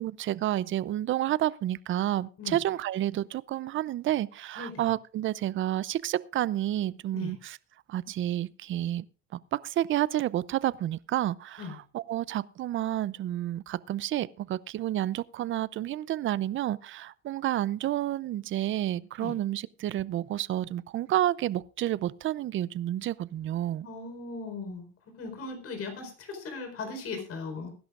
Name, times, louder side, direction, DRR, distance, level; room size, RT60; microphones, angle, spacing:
voice 1, 0.0-7.6 7.9-9.0 9.3-23.9, right 13 dB, 40° right, 0.5 m, -30 dB
voice 2, 23.8-24.9 25.2-27.7, left 4 dB, 45° left, 4.5 m, -38 dB
22.0 x 11.0 x 2.5 m
supercardioid pair, 110°, 31 cm